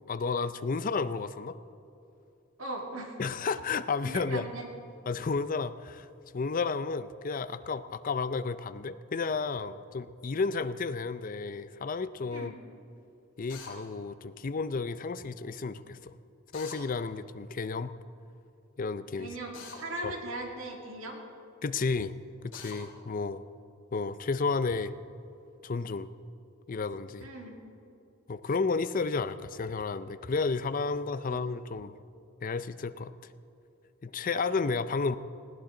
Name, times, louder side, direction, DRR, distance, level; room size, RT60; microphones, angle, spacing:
voice 1, 0.1-1.6 3.2-4.5 5.1-6.1 6.3-12.5 13.4-16.1 16.5-17.9 18.8-19.3 20.0-20.2 21.6-22.1 22.4-23.4 23.9-24.9 25.6-26.1 26.7-27.3 28.3-31.9 32.4-33.1 34.0-35.2, left 4 dB, 40° left, 13 dB, 0.5 m, -32 dB
voice 2, 2.6-3.2 4.0-4.7 12.3-12.6 19.2-21.2 27.2-27.6 31.3-31.4, right 2 dB, 65° right, 0 dB, 2.4 m, -39 dB
Drill, 13.5-13.7 16.5-16.8 19.5-19.8 22.5-22.8, left 4 dB, 55° left, 3.0 m, -44 dB
20.0 x 16.0 x 3.8 m, 2.6 s
head